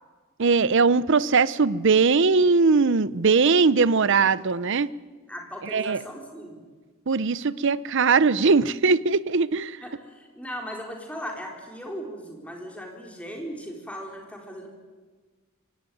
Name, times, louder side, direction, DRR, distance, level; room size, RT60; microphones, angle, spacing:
voice 1, 0.4-4.9 5.7-6.0 7.1-9.8, right 4 dB, 55° right, 18 dB, 0.6 m, -20 dB
voice 2, 5.3-6.6 9.8-14.7, equal, 5° left, 1 dB, 3.9 m, -38 dB
24.5 x 17.5 x 9.3 m, 1.4 s
head